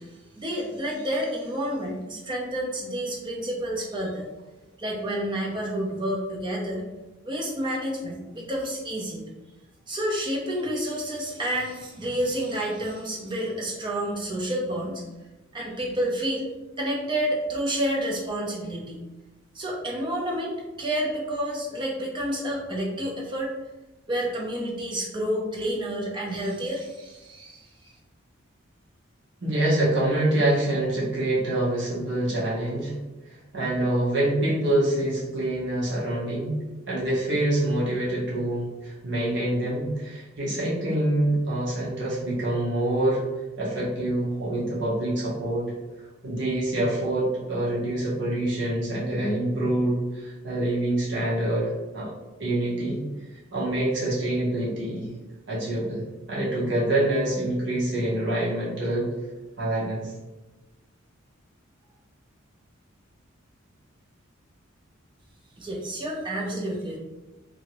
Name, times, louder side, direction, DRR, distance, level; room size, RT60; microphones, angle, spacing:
voice 1, 0.0-4.3 4.8-6.8 7.2-9.3 9.9-15.0 15.5-16.5 16.8-19.0 19.5-23.5 24.1-27.9 65.6-67.0, equal, 20° right, -3 dB, 0.6 m, -29 dB
voice 2, 29.4-32.9 33.5-43.2 43.6-45.7 46.2-52.1 52.4-53.0 53.5-55.1 55.5-56.0 56.3-59.1 59.6-60.1, right 1 dB, 60° right, -7 dB, 1.0 m, -26 dB
2.8 x 2.7 x 2.9 m, 1.1 s
head